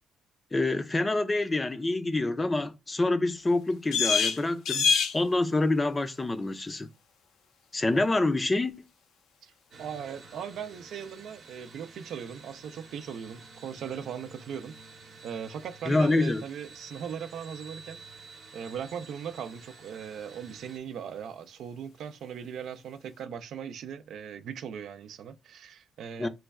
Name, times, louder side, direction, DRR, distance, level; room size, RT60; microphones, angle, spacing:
voice 1, 0.5-6.9 7.7-8.7 15.9-16.4 26.2-26.3, left 2 dB, 25° left, 0.4 m, -26 dB
sound 1, 3.5-23.2, left 6 dB, 75° left, 0.5 m, -37 dB
sound 2, 9.7-20.8, right 4 dB, 55° right, 0.8 m, -50 dB
voice 2, 9.8-14.7 15.2-18.0 18.5-26.3, right 8 dB, 75° right, 0.4 m, -39 dB
3.1 x 2.2 x 3.5 m
cardioid pair, 90°, 0 cm